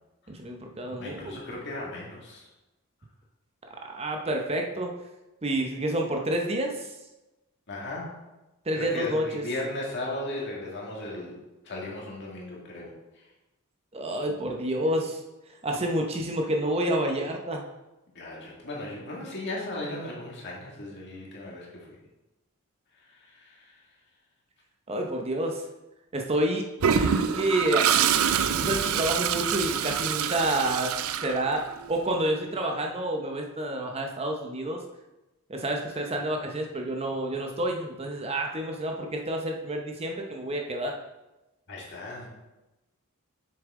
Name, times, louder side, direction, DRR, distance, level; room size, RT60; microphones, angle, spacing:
voice 1, 0.3-1.4 3.8-4.9 5.4-6.9 8.7-9.4 13.9-15.2 15.6-17.6 24.9-25.6 26.1-27.9 28.6-30.9 31.2-34.8 35.5-40.9, right 1 dB, 30° right, 2 dB, 0.7 m, -29 dB
voice 2, 1.0-2.5 7.7-8.1 8.7-11.4 11.6-13.2 18.1-22.0 23.0-23.8 41.7-42.3, left 1 dB, 55° left, -3 dB, 2.0 m, -36 dB
Toilet flush, 26.8-31.9, right 7 dB, 70° right, 0.4 m, -26 dB
7.1 x 6.7 x 3.7 m, 1.0 s
head